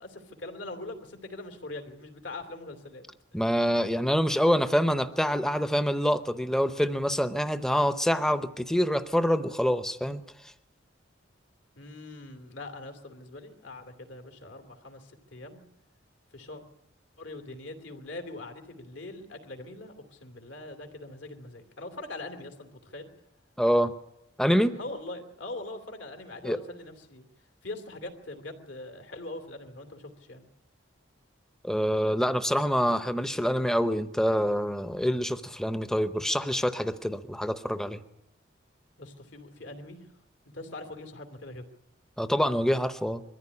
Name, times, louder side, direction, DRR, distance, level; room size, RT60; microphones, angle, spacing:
voice 1, 0.0-3.0 11.7-15.6 16.3-16.6 17.2-23.1 24.7-27.2 27.6-30.5 39.0-40.1 40.5-41.6, left 2 dB, 70° left, 5 dB, 2.9 m, -42 dB
voice 2, 3.3-10.2 23.6-23.9 24.4-24.8 26.4-26.6 31.6-38.0 42.2-43.2, equal, 5° left, 11 dB, 0.8 m, -26 dB
22.0 x 14.5 x 9.8 m, 0.88 s
head